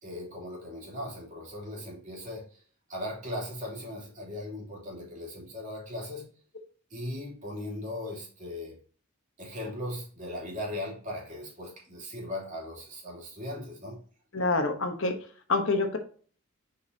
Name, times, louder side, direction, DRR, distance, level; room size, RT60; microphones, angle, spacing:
voice 1, 0.0-2.6 2.9-6.3 6.9-8.8 9.4-14.0, left 1 dB, 35° right, -3 dB, 2.9 m, -38 dB
voice 2, 14.3-15.2 15.5-16.0, left 3 dB, 60° left, 6 dB, 1.1 m, -26 dB
7.0 x 5.2 x 2.8 m, 0.43 s
head